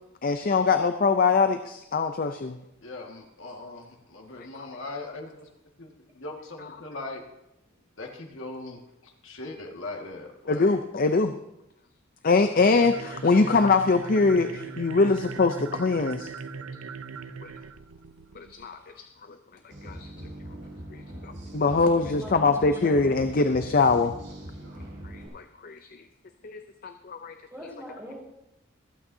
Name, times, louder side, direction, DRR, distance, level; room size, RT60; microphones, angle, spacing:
voice 1, 0.2-2.6 10.5-11.3 12.2-16.3 17.4-17.5 18.4-18.8 19.8-20.1 20.9-24.1 25.1-25.8 26.4-27.3, left 4 dB, 45° left, 8 dB, 0.5 m, -23 dB
voice 2, 2.8-5.5 5.8-7.2 8.0-10.8 18.9-19.0, left 2 dB, 65° left, 1 dB, 1.8 m, -40 dB
sound 1, 12.5-18.7, right 5 dB, 80° right, 0.6 m, -40 dB
sound 2, 19.7-25.3, right 1 dB, 60° right, 5.9 m, -41 dB
voice 3, 21.6-23.4 27.5-28.2, equal, 15° right, -5 dB, 5.5 m, -43 dB
26.0 x 8.8 x 2.7 m, 0.86 s
head